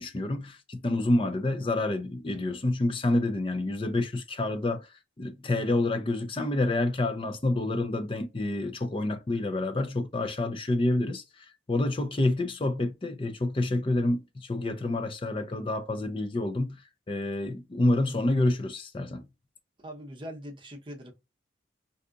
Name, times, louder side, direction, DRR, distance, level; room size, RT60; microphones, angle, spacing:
voice 1, 0.0-4.9 5.2-16.8 17.1-19.3, left 2 dB, 30° left, 0.4 m, -28 dB
voice 2, 19.8-21.1, equal, 25° right, 0.7 m, -41 dB
2.7 x 2.3 x 3.6 m
head